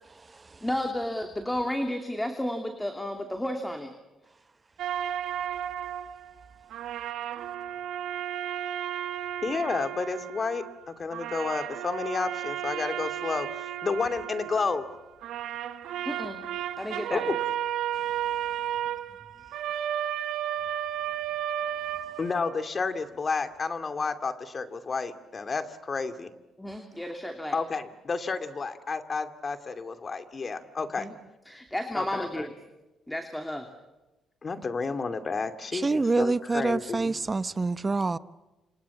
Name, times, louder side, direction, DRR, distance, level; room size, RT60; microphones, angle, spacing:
voice 1, 0.6-3.9 16.0-16.4 16.8-17.4 26.6-27.6 31.0-31.1 31.5-32.5 33.1-33.7, left 1 dB, 10° left, 2.7 m, -32 dB
sound 1, 4.8-6.4 6.7-10.9 11.1-14.9 15.2-22.7, right 10 dB, 80° right, 1.3 m, -33 dB
voice 2, 9.4-14.8 17.1-17.4 22.2-26.3 27.5-31.1 31.9-32.5 34.4-37.2, left 4 dB, 35° left, 2.6 m, -31 dB
voice 3, 35.7-38.2, right 3 dB, 25° right, 1.0 m, -26 dB
29.0 x 27.5 x 7.2 m
cardioid pair, 90°, 0 cm